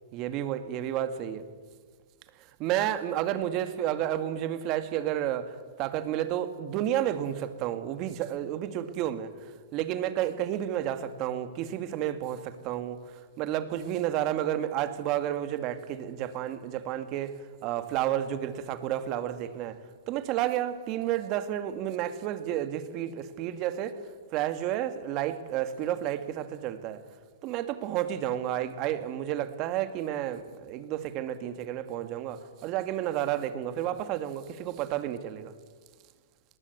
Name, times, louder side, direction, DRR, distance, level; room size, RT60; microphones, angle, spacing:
voice 1, 0.1-1.5 2.6-9.3 9.7-17.3 17.6-19.8 20.1-24.0 24.3-27.0 27.4-35.5, right 11 dB, 40° right, 10 dB, 1.8 m, -31 dB
19.5 x 19.0 x 7.9 m, 1.5 s
hypercardioid pair, 125°, 0 cm